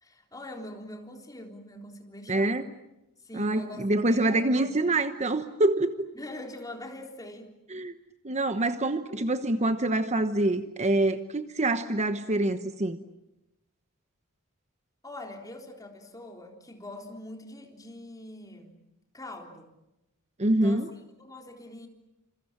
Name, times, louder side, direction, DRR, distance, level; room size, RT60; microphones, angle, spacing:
voice 1, 0.0-2.6 3.2-5.0 6.1-7.5 9.1-9.2 15.0-18.8 19.1-19.7 20.5-21.9, left 1 dB, 15° left, 2 dB, 3.8 m, -43 dB
voice 2, 2.3-2.6 3.4-6.1 7.7-7.9 8.2-13.0 20.4-20.9, right 2 dB, 30° right, 9 dB, 1.1 m, -26 dB
28.5 x 27.0 x 7.5 m, 0.92 s
head